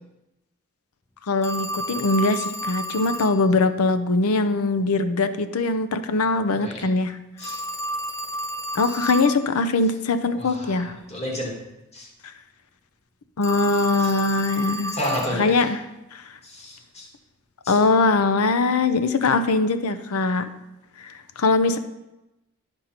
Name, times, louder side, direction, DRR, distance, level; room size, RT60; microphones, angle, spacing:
voice 1, 1.3-7.2 8.7-10.9 12.2-12.3 13.4-14.9 15.4-15.8 16.1-16.2 17.7-20.5 21.0-21.8, left 3 dB, 85° left, 10 dB, 0.6 m, -22 dB
Telephone, 1.4-3.4 7.4-9.4 13.4-15.4, right 1 dB, 10° left, 0.6 m, -31 dB
voice 2, 6.5-6.9 7.4-7.6 10.3-11.5 11.9-12.1 14.0-14.1 14.9-15.7 16.4-17.1 17.6-17.8, left 1 dB, 30° left, -2 dB, 2.1 m, -31 dB
11.5 x 5.3 x 4.3 m, 0.95 s
head